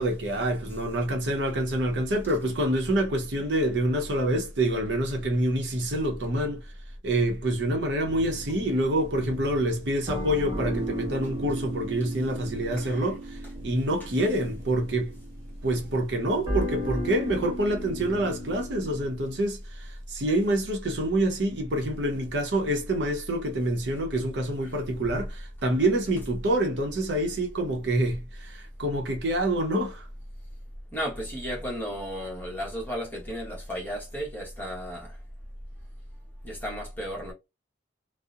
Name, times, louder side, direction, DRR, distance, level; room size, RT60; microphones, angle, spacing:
voice 1, 0.0-6.6 7.0-13.4 13.6-15.1 15.6-30.0, right 1 dB, 70° right, 0.7 m, -27 dB
sound 1, 8.1-19.1, equal, 20° right, 1.4 m, -36 dB
voice 2, 30.9-35.2 36.4-37.3, equal, 10° left, 1.0 m, -34 dB
2.7 x 2.0 x 2.3 m
head